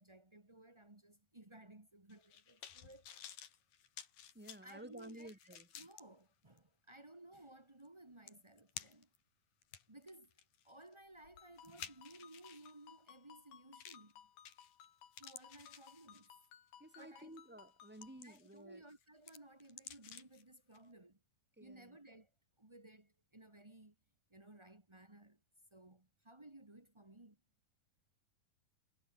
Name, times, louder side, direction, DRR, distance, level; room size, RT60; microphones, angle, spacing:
voice 1, 0.0-3.4 4.6-9.1 9.9-10.3 10.6-14.3 15.2-16.3 17.0-17.3 18.2-21.2 21.6-22.3 22.6-23.9 24.3-25.4 25.7-27.4, right 1 dB, 20° right, 0.7 m, -58 dB
sound 1, 2.1-6.0 6.6-6.7 7.9-8.0 8.3-9.2 9.6-12.7 13.8-14.1 14.5-14.9 15.1-16.5 17.0-17.2 17.7-18.6 18.9-20.4 20.7-20.8, left 9 dB, 60° left, 3.6 m, -54 dB
voice 2, 4.3-5.7 16.8-18.8 21.6-22.0, right 1 dB, 5° right, 1.9 m, -53 dB
Ringtone, 11.4-18.2, left 10 dB, 85° left, 4.4 m, -61 dB
omnidirectional pair, 4.6 m